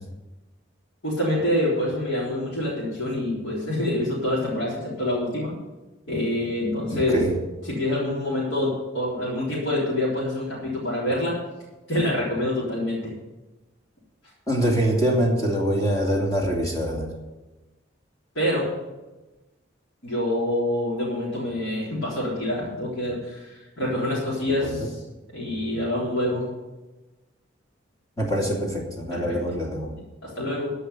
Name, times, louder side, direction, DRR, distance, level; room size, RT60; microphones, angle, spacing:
voice 1, 1.0-5.5 6.1-7.2 7.6-11.4 11.9-13.1 18.4-18.7 20.0-25.0 25.3-26.5 29.1-29.4 30.2-30.7, left 1 dB, 75° left, -7 dB, 3.8 m, -26 dB
voice 2, 6.9-7.4 14.5-17.1 24.6-24.9 28.2-29.9, equal, 20° left, -1 dB, 2.6 m, -24 dB
13.5 x 5.6 x 8.2 m, 1.1 s
head